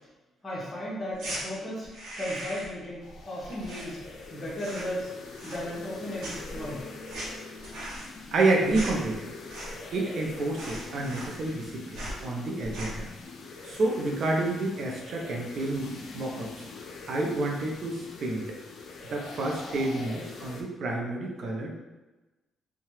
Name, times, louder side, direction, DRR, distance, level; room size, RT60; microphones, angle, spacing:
voice 1, 0.4-1.9 2.2-4.0 4.3-5.1 5.4-6.8, left 1 dB, 25° left, -5 dB, 1.0 m, -35 dB
sound 1, 1.1-1.4 1.8-2.8 3.1-4.3 4.5-5.0 5.3-5.9 6.2-10.0 10.2-10.3 10.5-11.6 11.9-12.2 12.6-13.1, right 1 dB, 90° right, 1.0 m, -39 dB
sound 2, 3.0-20.6, left 4 dB, 65° left, 0.4 m, -44 dB
Bass guitar, 6.5-12.8, left 2 dB, 40° right, 1.2 m, -54 dB
voice 2, 8.3-9.3 9.9-13.1 13.6-16.6 17.1-18.5 19.1-21.8, right 2 dB, 60° right, 0 dB, 0.6 m, -29 dB
2.8 x 2.2 x 3.1 m, 1.1 s
cardioid pair, 90°, 0 cm